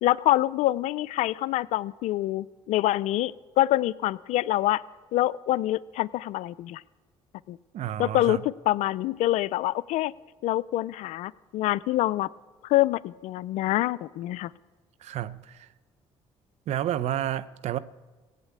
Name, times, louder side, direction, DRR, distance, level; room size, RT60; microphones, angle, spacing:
voice 1, 0.0-4.8 5.1-6.8 7.5-7.6 8.0-8.4 8.7-10.1 10.4-12.3 12.7-14.5, left 15 dB, 75° left, 0.4 m, -25 dB
voice 2, 7.7-8.4 15.0-15.7 16.7-17.8, right 12 dB, 65° right, 0.7 m, -30 dB
16.5 x 8.2 x 8.5 m
supercardioid pair, 75°, 12 cm